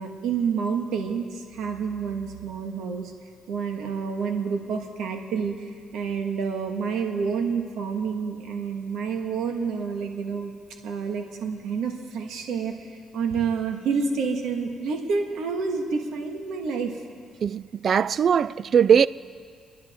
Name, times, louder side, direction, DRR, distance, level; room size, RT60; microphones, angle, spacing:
voice 1, 0.0-3.1 3.5-10.5 10.8-12.7 13.1-16.9, right 5 dB, 85° right, 1.6 m, -28 dB
voice 2, 17.4-19.1, right 7 dB, 55° right, 0.3 m, -20 dB
28.5 x 10.5 x 3.6 m
cardioid pair, 90°, 0 cm